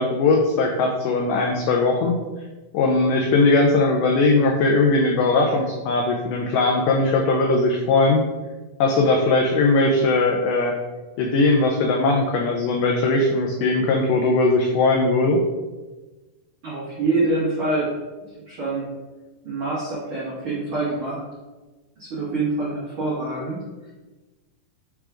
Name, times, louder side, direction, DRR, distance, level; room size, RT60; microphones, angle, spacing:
voice 1, 0.0-2.2 2.7-8.3 8.8-10.7 11.2-15.4, left 3 dB, 90° left, 2 dB, 1.8 m, -19 dB
voice 2, 16.6-17.9 18.5-18.9 19.4-21.2 22.0-23.6 23.8-23.9, right 2 dB, 75° right, -7 dB, 1.2 m, -25 dB
6.0 x 3.5 x 4.9 m, 1.2 s
omnidirectional pair, 4.4 m